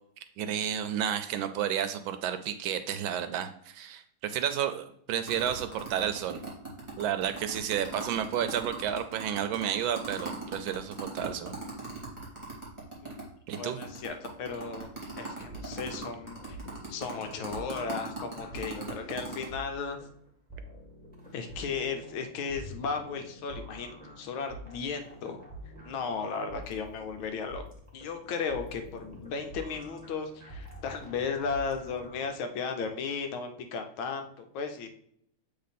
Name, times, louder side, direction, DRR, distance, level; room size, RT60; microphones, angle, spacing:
voice 1, 0.4-6.4 7.0-11.5 13.5-13.8, right 9 dB, 75° right, 9 dB, 1.2 m, -31 dB
sound 1, 5.3-13.2 13.5-13.6 13.8-19.5, right 3 dB, 15° right, 2.2 m, -39 dB
voice 2, 13.6-16.4 16.9-20.0 21.3-25.4 25.8-27.6 27.9-34.9, left 5 dB, 75° left, 6 dB, 1.5 m, -35 dB
sound 2, 15.4-32.3, right 1 dB, 5° left, 1.3 m, -47 dB
7.6 x 3.4 x 4.1 m, 0.69 s
omnidirectional pair, 2.3 m